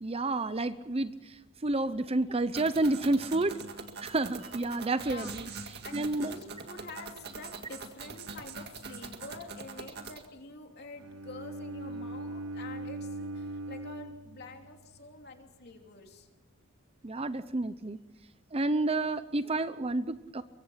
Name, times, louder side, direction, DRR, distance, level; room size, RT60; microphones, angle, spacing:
voice 1, 0.0-3.6 4.0-5.5 5.9-6.3 17.0-18.0 18.5-20.4, right 2 dB, 25° right, 13 dB, 0.7 m, -30 dB
sound 1, 2.5-10.3, right 4 dB, 50° right, 2.0 m, -43 dB
voice 2, 5.0-16.3, left 2 dB, 50° left, 3 dB, 3.1 m, -47 dB
Bowed string instrument, 11.0-15.1, right 2 dB, 85° right, 0.8 m, -40 dB
23.5 x 23.0 x 5.8 m, 0.97 s
head